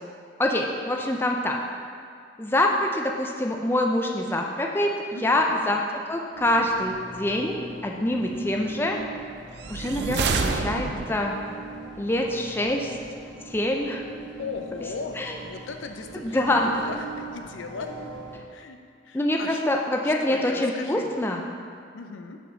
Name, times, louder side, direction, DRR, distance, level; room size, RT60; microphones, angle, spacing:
voice 1, 0.4-1.6 2.4-4.9 5.2-5.8 6.1-9.0 9.7-11.4 12.0-12.9 13.5-14.0 15.2-15.4 16.1-16.7 19.1-21.4, left 1 dB, 10° left, 1 dB, 0.4 m, -25 dB
voice 2, 5.1-5.6 14.4-18.1 18.5-18.8 19.0-19.6 20.0-21.1 21.9-22.4, left 4 dB, 90° left, 6 dB, 0.5 m, -37 dB
sound 1, 6.3-18.4, right 3 dB, 90° right, 1.2 m, -42 dB
sound 2, 9.5-11.3, right 4 dB, 60° right, 0.4 m, -27 dB
6.6 x 4.4 x 5.1 m, 2.3 s
head